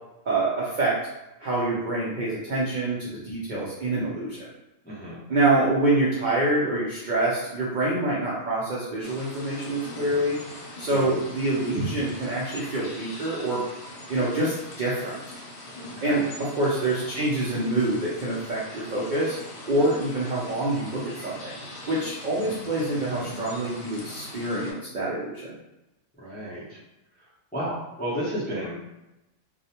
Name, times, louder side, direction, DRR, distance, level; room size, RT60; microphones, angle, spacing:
voice 1, 0.3-1.0 1.4-4.5 5.3-10.4 10.8-13.6 14.1-15.2 16.0-19.4 19.7-21.5 21.9-25.6, right 2 dB, 65° right, -6 dB, 0.4 m, -26 dB
voice 2, 4.8-5.2 10.9-11.2 16.0-16.2 22.4-22.6 26.2-26.8 27.5-28.7, equal, 15° left, -9 dB, 0.4 m, -32 dB
sound 1, 9.0-24.7, equal, 80° left, 1.1 m, -40 dB
2.4 x 2.0 x 2.8 m, 0.95 s
omnidirectional pair, 1.4 m